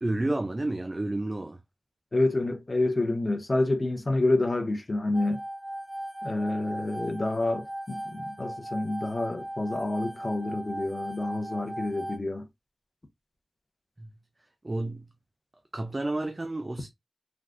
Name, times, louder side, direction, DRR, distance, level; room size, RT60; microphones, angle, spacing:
voice 1, 0.0-1.6 14.0-14.1 14.6-15.1 15.7-16.9, right 2 dB, 35° right, 0.4 m, -30 dB
voice 2, 2.1-5.4 6.2-12.5, left 2 dB, 40° left, 0.7 m, -28 dB
sound 1, 5.1-12.2, right 1 dB, 10° right, 0.7 m, -38 dB
3.4 x 2.5 x 2.4 m
wide cardioid pair, 70°, 0 cm